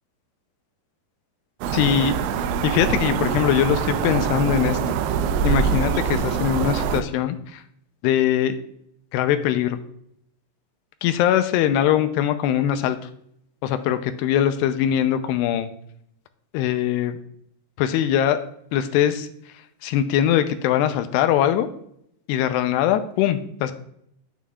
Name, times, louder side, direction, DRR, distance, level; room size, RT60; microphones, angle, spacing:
sound 1, 1.6-7.0, right 7 dB, 90° right, 3.0 m, -24 dB
voice 1, 1.7-2.2 2.6-5.0 5.4-7.6 8.0-8.6 9.1-9.8 11.0-13.0 13.6-15.7 16.5-17.2 17.8-18.5 18.7-19.3 19.8-21.7 22.3-23.7, left 10 dB, 85° left, 9 dB, 2.4 m, -21 dB
8.8 x 7.3 x 3.5 m, 0.71 s
omnidirectional pair, 5.3 m